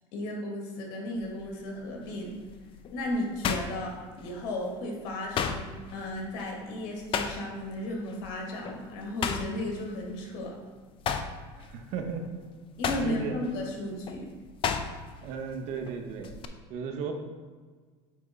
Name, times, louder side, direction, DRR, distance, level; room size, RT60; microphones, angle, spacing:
voice 1, 0.1-2.3 2.9-5.6 5.9-10.6 12.8-14.3, left 1 dB, 70° left, 0 dB, 1.8 m, -34 dB
sound 1, 1.2-1.5 2.1-4.6 4.8-7.8 8.1-8.3 8.6-10.6 10.9-15.3 15.5-16.5, left 6 dB, 40° left, 0.5 m, -34 dB
voice 2, 11.6-12.4 13.0-13.4 15.2-16.3 16.7-17.1, right 5 dB, 65° right, 4 dB, 0.9 m, -35 dB
8.6 x 3.6 x 4.0 m, 1.5 s
supercardioid pair, 115°, 14 cm